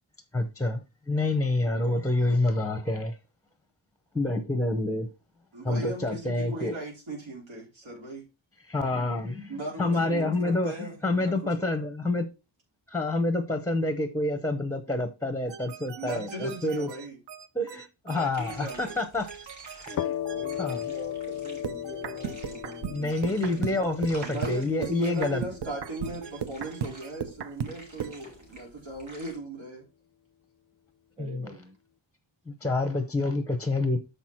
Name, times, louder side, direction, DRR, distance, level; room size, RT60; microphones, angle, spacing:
voice 1, 0.3-3.2 4.1-5.1 5.6-6.8 8.7-12.3 12.9-16.9 17.5-19.3 19.9-20.2 20.6-20.8 22.9-25.4 31.2-31.5 32.5-34.0, left 2 dB, 5° left, 0.6 m, -28 dB
voice 2, 1.6-2.0 9.9-10.4 20.3-24.0 31.2-31.8, right 1 dB, 15° right, 1.0 m, -45 dB
voice 3, 5.5-8.3 9.5-11.9 16.0-17.2 18.1-19.0 24.2-29.9, right 1 dB, 85° right, 3.6 m, -38 dB
sound 1, 15.5-20.8 21.6-28.2, right 8 dB, 65° right, 0.7 m, -38 dB
sound 2, 18.3-29.4, right 1 dB, 40° right, 3.9 m, -51 dB
sound 3, 19.9-27.4, left 11 dB, 45° left, 0.4 m, -37 dB
6.8 x 6.0 x 4.3 m
wide cardioid pair, 175°, 45 cm